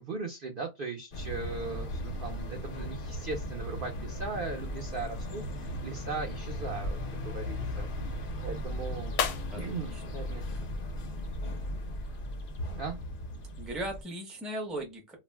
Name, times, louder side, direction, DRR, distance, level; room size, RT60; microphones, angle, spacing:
voice 1, 0.0-7.9 8.4-9.1 9.5-10.5 12.8-13.0, right 4 dB, 70° right, 0.5 m, -38 dB
sound 1, 1.1-14.0, left 1 dB, 65° left, 0.5 m, -37 dB
sound 2, 9.1-11.5, left 8 dB, 90° left, 1.1 m, -41 dB
voice 2, 9.9-10.2 13.6-15.2, right 1 dB, ahead, 0.4 m, -37 dB
2.4 x 2.1 x 3.2 m
omnidirectional pair, 1.6 m